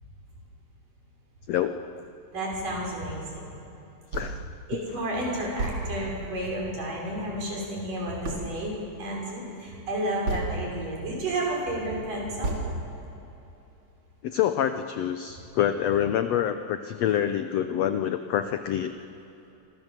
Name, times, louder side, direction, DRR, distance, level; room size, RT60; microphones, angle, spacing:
voice 1, 1.5-2.0 4.1-4.4 14.2-18.9, left 10 dB, 80° left, 9 dB, 1.4 m, -26 dB
voice 2, 2.3-3.6 4.7-12.6, right 1 dB, 70° right, -2 dB, 7.7 m, -31 dB
sound 1, 4.1-4.5 5.0-5.1 5.6-6.3 8.2-8.7 10.2-10.9 11.4-11.5 12.4-13.2, right 2 dB, 40° right, 3.6 m, -32 dB
28.5 x 24.5 x 7.5 m, 2.9 s
omnidirectional pair, 3.9 m